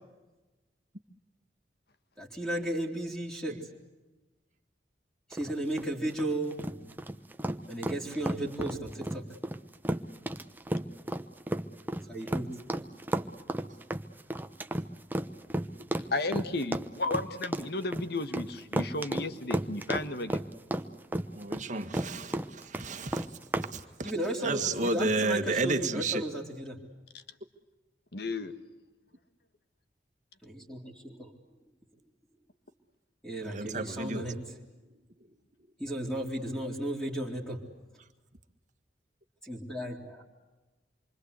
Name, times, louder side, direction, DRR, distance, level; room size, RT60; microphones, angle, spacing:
voice 1, 2.2-3.7 5.3-6.6 7.7-9.3 12.1-12.9 24.0-26.8 30.4-31.3 33.2-34.4 35.8-37.6 39.4-40.2, right 1 dB, 5° left, -4 dB, 3.0 m, -34 dB
sound 1, 5.3-23.7, right 1 dB, 10° right, 0.9 m, -33 dB
voice 2, 16.1-20.4 27.1-27.2 28.1-28.5, left 2 dB, 65° left, 10 dB, 1.6 m, -33 dB
voice 3, 21.3-23.3 23.7-24.1 24.4-26.2 33.4-34.6, right 3 dB, 45° right, 7 dB, 1.8 m, -32 dB
27.0 x 24.5 x 8.2 m, 1.1 s
head